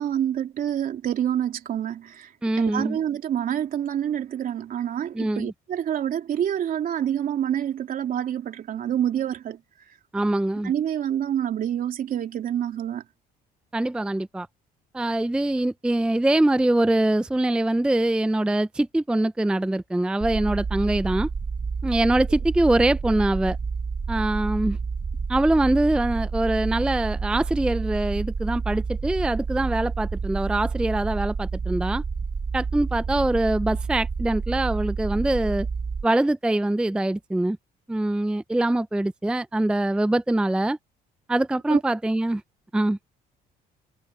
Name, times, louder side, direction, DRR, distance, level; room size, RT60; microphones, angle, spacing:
voice 1, 0.0-9.6 10.6-13.0 41.7-41.8, right 10 dB, 55° right, 3.2 m, -27 dB
voice 2, 2.4-3.0 5.1-5.5 10.1-10.7 13.7-14.5 14.9-21.3 21.8-23.6 24.1-24.8 25.3-32.0 32.5-35.7 36.0-37.6 37.9-40.8 41.3-42.4 42.7-43.0, right 1 dB, 5° right, 0.4 m, -23 dB
sound 1, 20.2-36.0, right 5 dB, 25° right, 1.3 m, -29 dB
cardioid pair, 110°, 17 cm